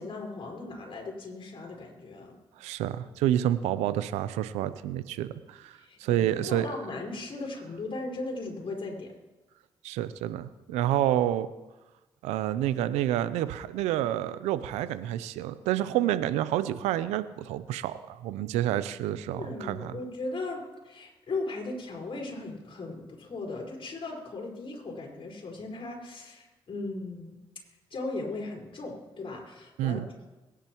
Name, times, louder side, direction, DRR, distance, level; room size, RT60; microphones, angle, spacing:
voice 1, 0.0-2.4 5.7-9.1 19.3-27.4 27.9-30.3, left 3 dB, 55° left, 0 dB, 4.8 m, -37 dB
voice 2, 2.6-6.7 9.8-11.5 12.2-19.9 29.8-30.1, right 12 dB, 90° right, 14 dB, 0.6 m, -29 dB
23.0 x 10.5 x 3.0 m, 1.1 s
supercardioid pair, 45°, 11 cm